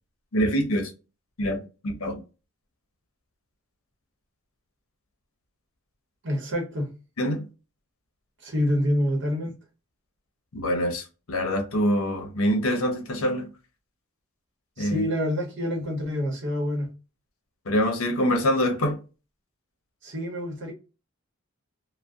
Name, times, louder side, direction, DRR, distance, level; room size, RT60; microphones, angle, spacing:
voice 1, 0.3-0.9 1.4-2.2 7.2-7.4 10.5-13.5 14.8-15.0 17.7-19.0, equal, 70° left, 0.7 m, -25 dB
voice 2, 6.2-6.9 8.4-9.5 14.8-16.9 20.0-20.7, equal, 55° right, 0.9 m, -27 dB
2.6 x 2.1 x 2.3 m
head